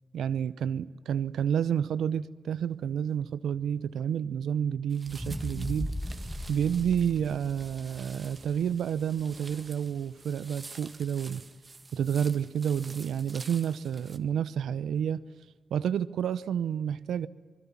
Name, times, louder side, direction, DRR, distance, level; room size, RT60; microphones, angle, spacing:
voice 1, 0.1-5.9 6.5-11.4 11.9-15.2 15.7-17.3, right 8 dB, 80° right, 0.7 m, -30 dB
sound 1, 4.9-14.2, right 3 dB, 35° right, 1.7 m, -49 dB
sound 2, 5.1-9.3 9.8-9.9, equal, ahead, 1.8 m, -38 dB
26.5 x 21.0 x 7.3 m
supercardioid pair, 50°, 0 cm